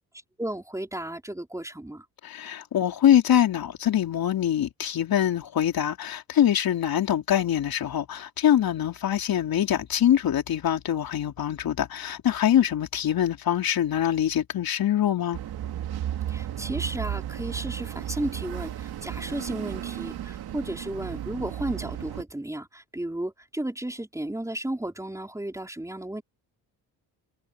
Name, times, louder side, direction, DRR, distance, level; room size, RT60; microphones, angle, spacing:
voice 1, 0.4-2.1 16.3-26.2, right 1 dB, 10° right, 5.0 m, -33 dB
voice 2, 2.2-15.4, left 10 dB, 60° left, 3.7 m, -24 dB
sound 1, 15.3-22.2, right 11 dB, 70° right, 2.5 m, -34 dB
cardioid pair, 90°, 40 cm